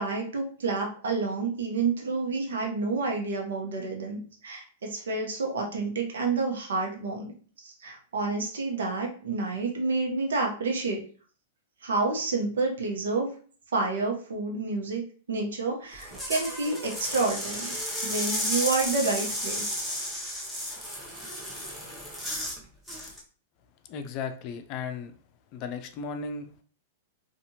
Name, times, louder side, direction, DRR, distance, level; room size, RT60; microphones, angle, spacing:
voice 1, 0.0-7.3 7.6-11.0 11.8-13.3 13.7-15.0 15.3-17.8 18.0-19.7, right 3 dB, 85° right, 1 dB, 0.8 m, -29 dB
sound 1, 15.9-22.6 22.9-23.2, equal, ahead, 0.9 m, -33 dB
voice 2, 23.9-25.1 25.5-26.6, left 5 dB, 45° left, 7 dB, 0.5 m, -35 dB
2.7 x 2.5 x 2.7 m, 0.43 s
hypercardioid pair, 120°, 0 cm